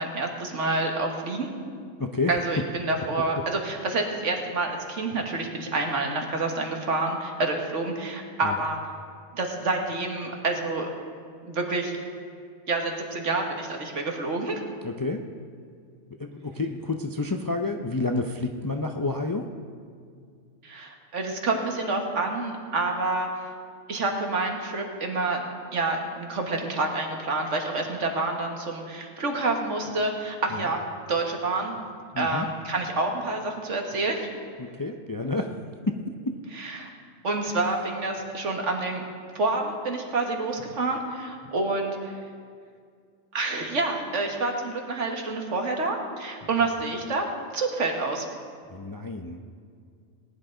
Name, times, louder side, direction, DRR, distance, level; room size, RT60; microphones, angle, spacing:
voice 1, 0.0-1.5 2.3-8.8 9.3-10.9 11.4-11.9 12.7-14.6 20.6-23.3 23.9-25.4 25.7-30.8 31.1-31.8 32.2-34.3 36.5-36.9 37.2-39.0 39.4-42.2 43.3-47.3 47.5-48.3, right 3 dB, 85° right, 2 dB, 1.8 m, -28 dB
voice 2, 2.0-2.3 8.4-8.6 14.8-15.2 16.2-19.5 32.1-32.5 34.6-35.5 35.9-36.0 36.2-36.4 48.7-49.4, left 3 dB, 35° left, 4 dB, 0.3 m, -29 dB
19.5 x 10.0 x 3.8 m, 2.2 s
omnidirectional pair, 1.2 m